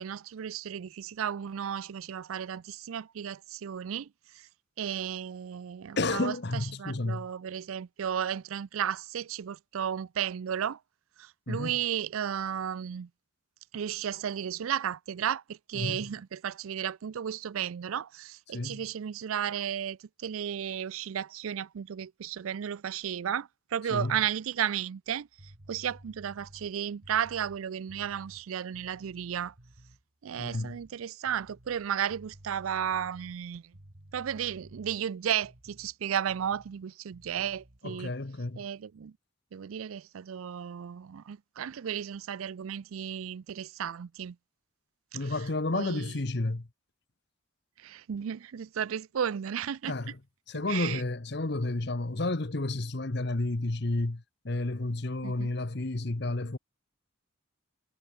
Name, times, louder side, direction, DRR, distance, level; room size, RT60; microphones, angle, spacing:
voice 1, 0.0-4.1 4.3-4.5 4.8-10.8 11.2-13.1 13.7-29.5 30.2-33.7 34.1-38.1 38.6-39.1 39.5-44.4 45.1-45.3 45.7-46.1 47.8-49.9 50.7-51.0 55.2-55.5, right 9 dB, 85° right, 0.4 m, -34 dB
voice 2, 6.0-7.3 11.5-11.7 15.7-16.1 18.5-18.8 23.9-24.2 30.4-30.8 37.8-38.6 45.1-46.7 49.9-50.2 50.5-56.6, left 2 dB, 50° left, 1.0 m, -31 dB
sound 1, 25.1-30.0 30.4-31.0 31.3-36.0 36.3-36.8 37.1-37.8, right 1 dB, 50° right, 2.4 m, -54 dB
head